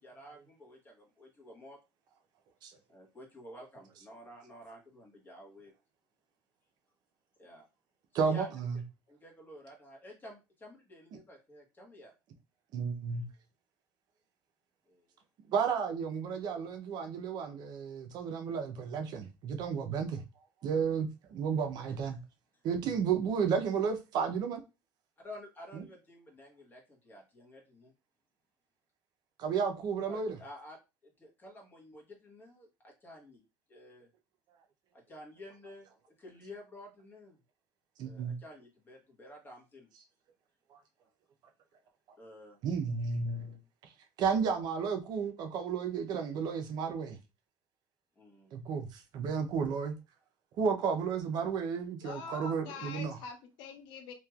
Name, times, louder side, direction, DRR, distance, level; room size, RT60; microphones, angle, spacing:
voice 1, 0.0-1.8 2.9-5.7 7.4-7.7 8.1-8.5 9.1-12.1 14.9-15.0 22.0-22.1 25.2-27.9 30.1-30.8 31.0-33.4 33.7-34.1 34.9-35.9 36.2-37.4 38.0-39.9 42.2-42.6 48.2-48.5, left 1 dB, 25° left, 1.3 m, -51 dB
voice 2, 8.1-8.8 12.7-13.2 15.5-20.2 20.6-22.2 22.6-24.6 25.7-25.8 29.4-30.4 38.0-38.4 40.7-40.8 42.6-43.6 44.2-47.2 48.5-49.9 50.6-53.2, right 6 dB, 55° right, 0.6 m, -32 dB
voice 3, 52.0-54.1, left 5 dB, 70° left, 0.6 m, -44 dB
3.1 x 2.8 x 2.3 m
cardioid pair, 115°, 8 cm